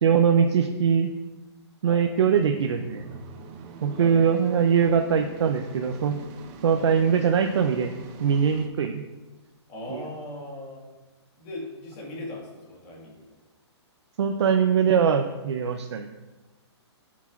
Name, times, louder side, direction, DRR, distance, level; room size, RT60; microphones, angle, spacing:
voice 1, 0.0-1.1 1.8-3.2 3.8-6.2 6.6-7.9 8.2-9.1 9.9-10.0 14.2-16.1, right 7 dB, 70° right, 5 dB, 0.6 m, -22 dB
sound 1, 2.3-8.7, right 4 dB, 20° right, 0.4 m, -44 dB
voice 2, 9.7-10.8 11.4-13.2, left 1 dB, 25° left, -2 dB, 1.6 m, -39 dB
10.0 x 6.0 x 2.4 m, 1.1 s
hypercardioid pair, 160°, 15 cm